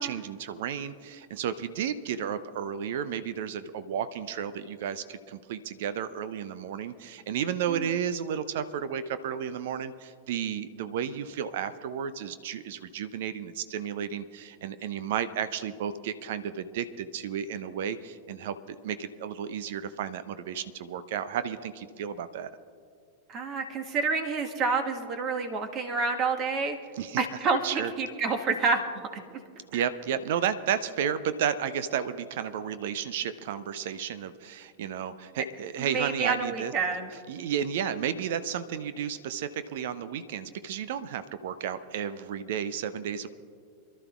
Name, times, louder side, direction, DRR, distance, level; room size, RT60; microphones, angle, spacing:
voice 1, 0.0-22.5 27.0-27.2 27.6-27.9 29.7-36.7 37.3-43.3, right 8 dB, 55° right, 14 dB, 0.5 m, -32 dB
voice 2, 23.3-26.8 27.2-28.8 29.3-29.4 29.7-29.8 35.8-37.1, right 4 dB, 35° right, 5 dB, 1.4 m, -28 dB
27.5 x 12.0 x 2.4 m, 2.2 s
figure-of-eight pair, 90°, 0 cm